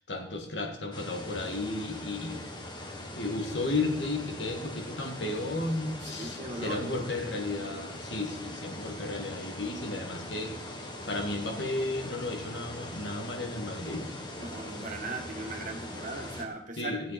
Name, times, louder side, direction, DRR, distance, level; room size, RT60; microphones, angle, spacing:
voice 1, 0.0-2.5 3.2-10.6 11.1-14.1 16.8-17.1, left 2 dB, 80° left, 2 dB, 2.2 m, -34 dB
sound 1, 0.9-16.5, left 1 dB, 25° left, 1.5 m, -41 dB
voice 2, 6.0-7.1 14.4-17.1, right 2 dB, 45° right, 2 dB, 2.0 m, -39 dB
16.5 x 8.2 x 4.4 m, 0.80 s
head